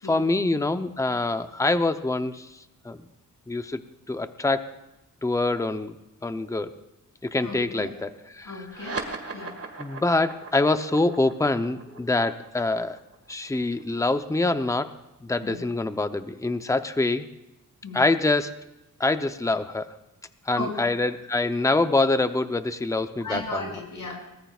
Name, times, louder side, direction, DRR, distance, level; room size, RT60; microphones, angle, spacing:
voice 1, 0.1-2.5 2.8-3.0 3.5-3.8 4.1-4.6 5.2-6.0 6.2-6.7 7.2-8.7 9.8-13.0 13.3-14.9 15.2-17.3 17.9-18.5 19.0-19.9 20.5-23.6, left 2 dB, 10° left, 10 dB, 0.7 m, -25 dB
voice 2, 7.4-7.9 8.4-9.0 9.3-9.5 15.4-15.6 17.8-18.0 20.5-20.7 23.2-24.1, left 2 dB, 75° left, -1 dB, 6.6 m, -35 dB
sound 1, 8.6-15.5, right 3 dB, 45° right, 1.9 m, -40 dB
23.0 x 19.0 x 2.4 m, 0.97 s
wide cardioid pair, 115°, 33 cm